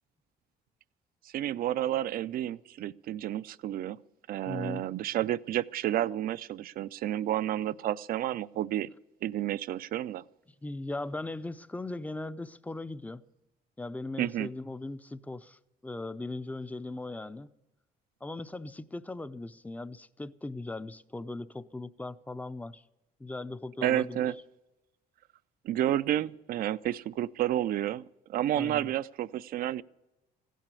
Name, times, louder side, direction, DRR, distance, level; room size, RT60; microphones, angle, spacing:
voice 1, 1.2-4.0 4.3-8.9 9.2-10.2 14.2-14.5 23.8-24.3 25.6-28.0 28.3-29.8, right 12 dB, 60° right, 0.4 m, -30 dB
voice 2, 4.5-4.9 10.6-13.2 13.8-17.5 18.2-22.8 23.2-24.2 28.6-28.9, left 2 dB, 10° left, 0.5 m, -39 dB
16.0 x 9.1 x 8.4 m
cardioid pair, 110°, 17 cm